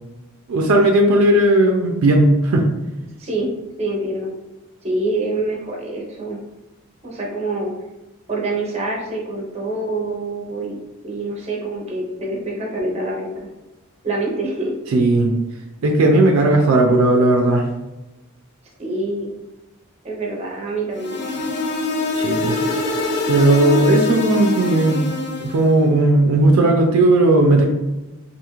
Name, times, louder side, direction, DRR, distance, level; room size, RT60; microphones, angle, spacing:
voice 1, 0.5-2.7 14.9-15.3 15.8-17.7 22.1-22.6 23.3-25.0 25.4-27.6, right 2 dB, 75° right, 1 dB, 0.4 m, -15 dB
voice 2, 3.2-3.5 3.8-4.3 4.8-6.4 7.0-7.7 8.3-10.8 11.0-13.3 14.0-14.7 18.8-19.3 20.0-21.2, right 2 dB, 30° right, -3 dB, 0.7 m, -25 dB
sound 1, 20.9-25.7, left 2 dB, 55° left, 0.4 m, -24 dB
2.5 x 2.4 x 2.9 m, 1.1 s
head